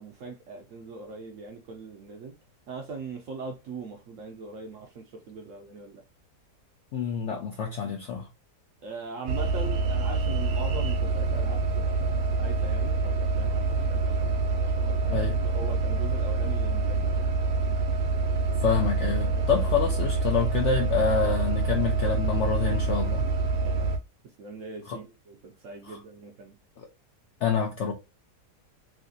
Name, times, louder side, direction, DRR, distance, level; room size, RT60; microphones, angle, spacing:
voice 1, 0.0-2.3 2.7-6.0 8.8-17.3 19.3-19.5 22.9-23.1 23.6-23.9 24.2-26.6, right 4 dB, 65° right, 0.8 m, -41 dB
voice 2, 6.9-8.3 15.1-15.3 18.6-23.2 24.9-25.0 25.9-26.0 27.4-27.9, left 6 dB, 70° left, 0.7 m, -27 dB
sound 1, 9.3-24.0, right 3 dB, 80° right, 1.2 m, -26 dB
3.2 x 2.8 x 2.6 m
omnidirectional pair, 1.8 m